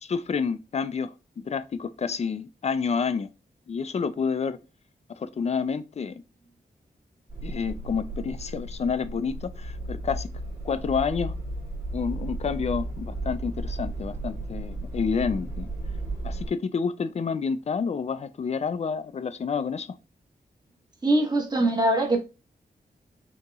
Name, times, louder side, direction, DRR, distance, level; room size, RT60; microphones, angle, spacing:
voice 1, 0.0-3.3 3.7-4.6 5.2-6.2 7.4-10.3 10.6-11.4 11.9-15.7 16.2-20.0, left 5 dB, 40° left, 0.4 m, -29 dB
sound 1, 7.3-16.5, right 1 dB, 40° right, 2.7 m, -34 dB
voice 2, 21.0-22.2, right 1 dB, 25° right, 1.1 m, -22 dB
6.5 x 2.9 x 2.4 m
wide cardioid pair, 160°, 17 cm